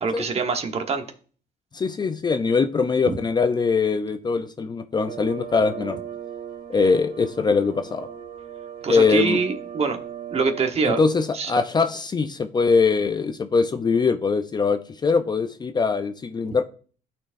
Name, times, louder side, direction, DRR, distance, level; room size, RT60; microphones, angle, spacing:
voice 1, 0.0-1.0 8.8-10.0 10.3-11.0 11.3-11.5, right 5 dB, 35° right, 1.2 m, -24 dB
voice 2, 1.7-6.0 6.7-8.1 8.9-9.4 10.8-16.6, left 4 dB, 25° left, 0.5 m, -22 dB
sound 1, 5.1-10.7, right 9 dB, 75° right, 1.3 m, -37 dB
12.0 x 4.4 x 2.6 m
cardioid pair, 110°, 17 cm